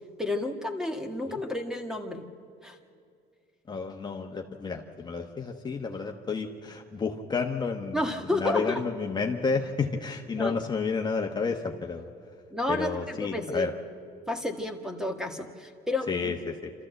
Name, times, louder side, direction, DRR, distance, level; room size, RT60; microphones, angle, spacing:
voice 1, 0.2-2.3 2.6-2.8 7.9-8.8 10.4-10.6 12.5-13.7 14.3-16.3, left 2 dB, 5° right, 5 dB, 1.7 m, -31 dB
voice 2, 3.7-8.0 8.3-12.1 12.7-13.7 16.1-16.7, left 4 dB, 25° left, 2 dB, 1.2 m, -31 dB
27.5 x 14.0 x 7.8 m, 2.3 s
cardioid pair, 110°, 17 cm